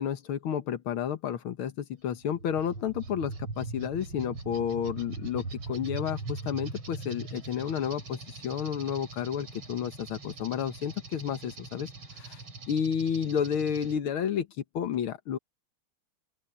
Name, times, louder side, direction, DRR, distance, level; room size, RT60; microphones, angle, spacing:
voice 1, 0.0-11.9 12.2-12.4 12.7-14.5 14.7-15.4, left 8 dB, 70° left, 2.0 m, -31 dB
sound 1, 2.1-14.0, right 3 dB, 80° right, 5.1 m, -41 dB
open air
omnidirectional pair, 2.4 m